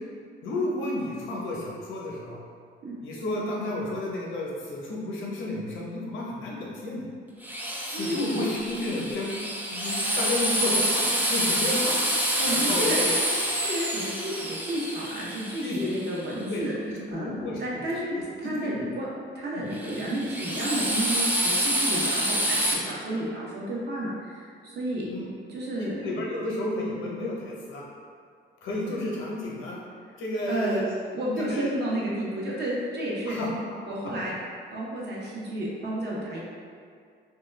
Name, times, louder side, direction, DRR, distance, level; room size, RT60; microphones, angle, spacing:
voice 1, 0.4-2.4 3.0-7.0 7.9-9.3 9.7-12.0 12.5-13.2 15.6-15.9 16.3-17.9 18.2-18.9 19.5-19.7 21.9-22.0 25.1-25.4 26.0-27.8 28.6-29.8 30.2-30.8 31.2-31.7 33.3-33.5, left 2 dB, 85° left, -3 dB, 0.6 m, -32 dB
Drill, 7.4-16.3 19.7-22.7, equal, 10° right, 0.4 m, -27 dB
voice 2, 7.9-8.5 12.4-13.0 13.6-16.7 17.1-19.1 19.3-25.1 25.5-25.9 30.5-30.8 31.1-33.4 33.9-34.3 34.7-36.4, right 1 dB, 55° right, -5 dB, 0.7 m, -31 dB
2.2 x 2.2 x 3.1 m, 2.2 s
cardioid pair, 90°, 20 cm